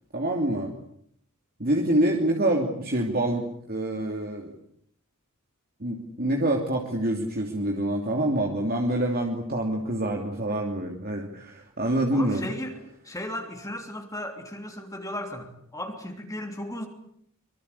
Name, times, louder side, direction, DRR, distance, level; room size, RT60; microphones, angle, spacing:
voice 1, 0.1-0.7 1.6-3.4 3.7-4.5 5.8-12.4, right 1 dB, 45° right, 1 dB, 3.0 m, -26 dB
voice 2, 12.1-16.9, left 1 dB, 15° left, 4 dB, 3.2 m, -36 dB
24.5 x 24.0 x 8.5 m, 0.69 s
head